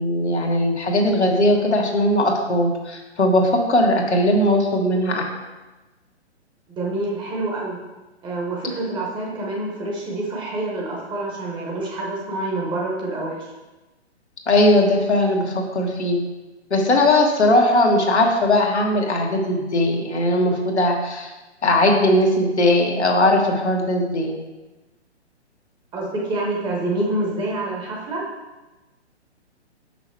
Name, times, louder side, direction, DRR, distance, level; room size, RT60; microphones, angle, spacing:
voice 1, 0.0-5.3 14.5-16.2 16.7-21.3 21.6-24.3, left 1 dB, 75° left, 0 dB, 1.5 m, -19 dB
voice 2, 6.8-7.8 8.2-13.5 25.9-28.2, right 2 dB, 15° right, -3 dB, 1.0 m, -27 dB
5.9 x 5.8 x 4.4 m, 1.1 s
figure-of-eight pair, 130°, 34 cm